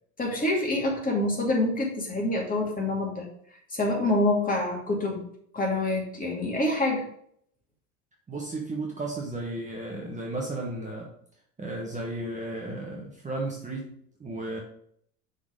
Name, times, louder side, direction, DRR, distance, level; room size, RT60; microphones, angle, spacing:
voice 1, 0.2-3.3 3.7-7.1, left 2 dB, 20° left, -1 dB, 2.4 m, -26 dB
voice 2, 8.3-11.1 11.6-14.6, right 2 dB, 15° right, -2 dB, 1.2 m, -34 dB
6.0 x 4.1 x 5.1 m, 0.66 s
hypercardioid pair, 80°, 43 cm